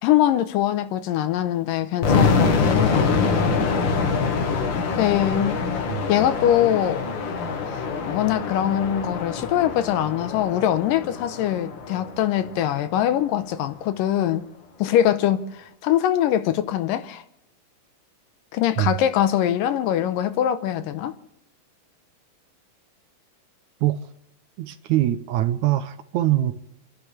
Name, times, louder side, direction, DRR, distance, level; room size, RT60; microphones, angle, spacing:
voice 1, 0.0-3.2 5.0-5.6 6.1-7.0 7.7-14.5 14.8-17.2 18.5-21.2, left 11 dB, 80° left, 2.5 m, -23 dB
sound 1, 2.0-12.9, left 4 dB, 65° left, 1.2 m, -25 dB
voice 2, 24.6-26.5, right 14 dB, 80° right, 1.8 m, -23 dB
29.5 x 11.5 x 3.3 m
omnidirectional pair, 4.0 m